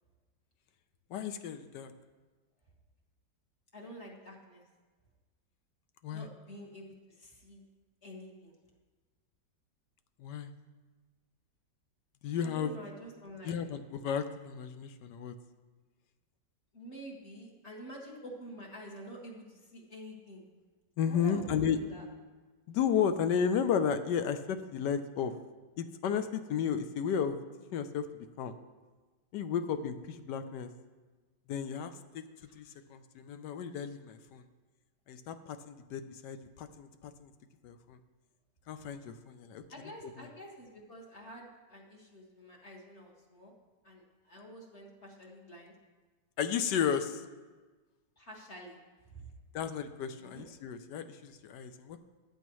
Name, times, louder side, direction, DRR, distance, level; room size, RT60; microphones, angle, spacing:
voice 1, 1.1-1.9 6.0-6.3 10.2-10.5 12.2-12.7 13.4-15.3 21.0-21.8 22.7-25.3 25.8-27.4 27.7-28.5 29.3-30.7 31.5-32.2 32.5-34.4 35.1-37.3 37.6-38.0 38.7-40.3 46.4-47.2 49.5-52.0, left 7 dB, 75° left, 10 dB, 1.2 m, -33 dB
voice 2, 3.7-4.6 6.1-7.6 8.0-8.5 12.4-13.5 16.7-20.4 21.1-22.0 32.6-32.7 39.7-43.5 43.8-45.7 48.2-48.8 49.1-49.2 50.2-50.5, equal, 40° left, -2 dB, 2.0 m, -48 dB
14.5 x 10.0 x 3.1 m, 1.3 s
omnidirectional pair, 2.0 m